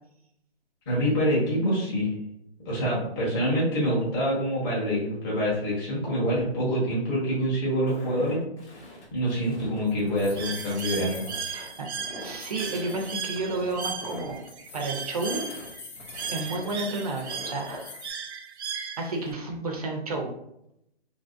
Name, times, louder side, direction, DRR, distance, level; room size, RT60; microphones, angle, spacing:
voice 1, 0.9-2.1 2.6-8.4 9.1-11.2, equal, 20° left, -8 dB, 0.8 m, -26 dB
Walk footsteps, 7.9-17.8, left 1 dB, 85° left, 1.1 m, -44 dB
sound 1, 9.2-18.1, left 5 dB, 55° left, 0.5 m, -47 dB
Bird, 10.4-19.3, right 6 dB, 85° right, 0.5 m, -37 dB
voice 2, 11.5-14.4 14.7-15.4 16.3-17.9 19.0-20.3, right 2 dB, 35° right, 1 dB, 0.5 m, -31 dB
2.9 x 2.6 x 2.4 m, 0.79 s
hypercardioid pair, 160°, 33 cm